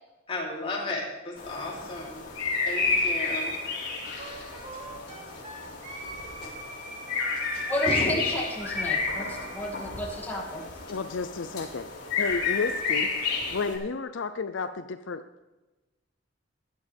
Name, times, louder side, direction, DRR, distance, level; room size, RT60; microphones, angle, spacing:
voice 1, 0.3-2.3 2.6-3.5 6.4-6.5 7.5-8.1, left 2 dB, 30° left, -3 dB, 3.4 m, -34 dB
sound 1, 1.4-13.8, left 4 dB, 55° left, 4.4 m, -31 dB
Wind instrument woodwind instrument, 4.2-9.8, right 2 dB, 40° right, 3.0 m, -43 dB
voice 2, 7.7-10.6, equal, 10° left, -4 dB, 2.5 m, -32 dB
voice 3, 10.9-11.9 12.2-15.4, left 4 dB, 75° left, 10 dB, 0.5 m, -32 dB
16.0 x 11.0 x 3.5 m, 1.1 s
head